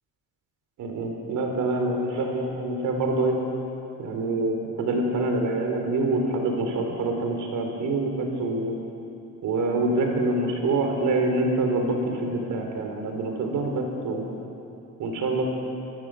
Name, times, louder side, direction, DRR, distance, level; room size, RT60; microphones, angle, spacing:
voice 1, 0.8-3.4 4.0-8.8 9.4-14.4 15.0-15.4, right 2 dB, 80° right, 2 dB, 4.1 m, -26 dB
24.5 x 14.0 x 7.8 m, 2.8 s
cardioid pair, 90°, 30 cm